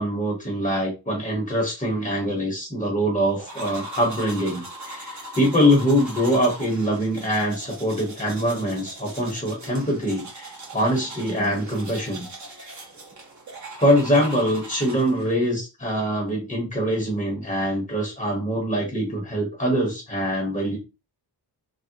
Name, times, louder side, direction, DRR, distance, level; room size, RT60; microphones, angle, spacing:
voice 1, 0.0-12.3 12.6-12.7 13.8-20.8, equal, 15° left, -1 dB, 0.9 m, -23 dB
sound 1, 3.4-15.4, right 1 dB, 45° right, 1.1 m, -39 dB
3.5 x 2.2 x 2.7 m, 0.28 s
wide cardioid pair, 145°, 42 cm